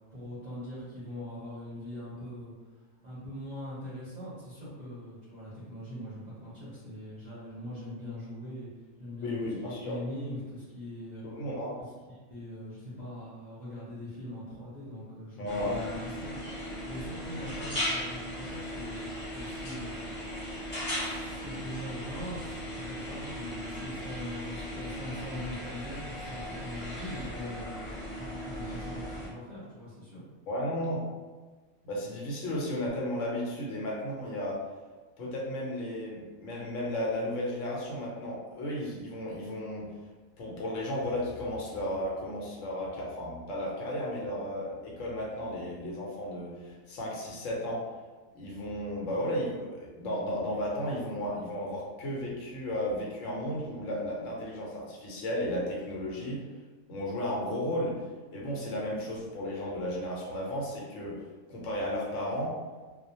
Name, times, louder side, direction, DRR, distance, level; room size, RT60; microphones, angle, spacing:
voice 1, 0.1-8.7 9.0-9.4 9.6-11.4 12.3-16.6 16.8-20.0 20.6-27.6 28.2-30.2, equal, 45° right, -9 dB, 0.6 m, -42 dB
voice 2, 9.2-10.0 11.2-11.8 15.4-15.8 30.5-31.0 31.8-34.6 35.2-39.9 40.4-47.8 48.4-56.4 56.9-57.9 58.3-61.1 61.5-62.5, left 1 dB, 75° left, -4 dB, 1.0 m, -34 dB
sound 1, 15.5-29.3, equal, 35° left, 0.6 m, -37 dB
2.3 x 2.0 x 2.7 m, 1.3 s
omnidirectional pair, 1.4 m